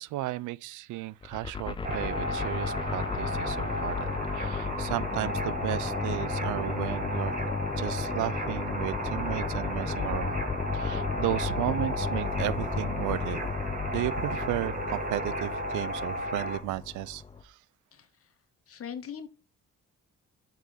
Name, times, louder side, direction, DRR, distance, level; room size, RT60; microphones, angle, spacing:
voice 1, 0.0-10.4 10.7-13.4 13.9-17.6, right 16 dB, 85° right, 0.4 m, -34 dB
sound 1, 1.2-17.4, left 5 dB, 15° left, 0.5 m, -33 dB
sound 2, 1.8-16.6, right 1 dB, 30° right, 1.8 m, -35 dB
voice 2, 17.9-18.3 18.7-19.3, left 8 dB, 50° left, 0.8 m, -41 dB
8.1 x 3.8 x 3.9 m
cardioid pair, 90°, 30 cm